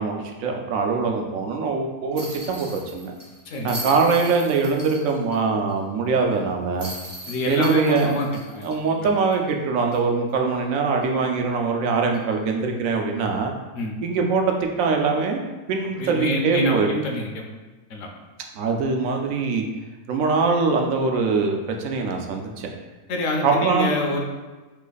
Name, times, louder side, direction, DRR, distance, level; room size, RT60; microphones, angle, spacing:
voice 1, 0.0-3.1 3.6-6.9 7.5-8.1 8.6-13.5 14.0-15.4 15.7-16.9 18.5-19.6 20.1-22.7 23.4-23.9, right 4 dB, 90° right, 2 dB, 1.0 m, -23 dB
sound 1, 2.2-5.4 5.7-5.8 6.8-9.5 9.9-10.0 12.1-12.3, right 1 dB, 25° right, 0.4 m, -38 dB
voice 2, 7.3-8.3 8.5-8.7 9.0-9.1 13.8-13.9 16.0-17.4 17.9-18.1 23.1-24.2, left 1 dB, 70° left, 1 dB, 1.0 m, -26 dB
3.3 x 3.0 x 3.9 m, 1.2 s
omnidirectional pair, 1.4 m